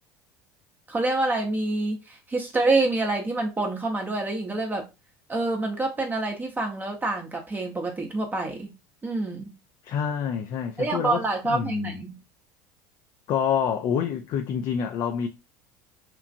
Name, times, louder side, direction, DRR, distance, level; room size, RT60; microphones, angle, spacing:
voice 1, 0.9-4.8 5.3-8.7 9.0-9.5 10.8-12.2, right 2 dB, 20° right, 0.7 m, -27 dB
voice 2, 9.8-12.0 13.3-15.3, left 7 dB, 50° left, 0.4 m, -27 dB
3.0 x 2.4 x 2.5 m
hypercardioid pair, 80°, 9 cm